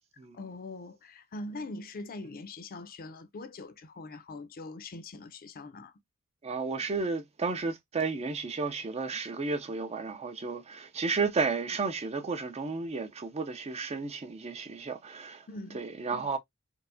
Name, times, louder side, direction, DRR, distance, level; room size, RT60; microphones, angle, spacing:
voice 1, 0.3-5.9 15.5-15.8, left 2 dB, 45° left, 0.5 m, -42 dB
voice 2, 6.4-15.5 15.7-16.4, right 4 dB, 30° right, 0.4 m, -32 dB
4.5 x 2.1 x 2.5 m
head